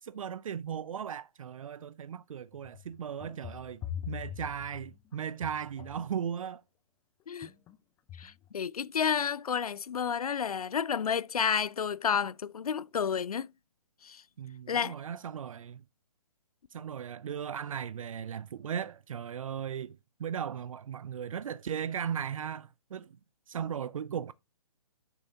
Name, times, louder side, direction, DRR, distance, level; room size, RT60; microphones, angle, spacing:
voice 1, 0.0-3.8 4.1-6.6 14.4-15.8 16.7-23.2 23.5-24.3, right 8 dB, 65° right, 0.4 m, -37 dB
sound 1, 2.5-6.1 7.4-7.8 8.1-8.5, left 10 dB, 10° left, 0.4 m, -42 dB
voice 2, 8.2-13.5 14.0-14.2 14.7-14.9, left 7 dB, 85° left, 0.4 m, -31 dB
10.0 x 6.9 x 2.7 m
hypercardioid pair, 140°, 18 cm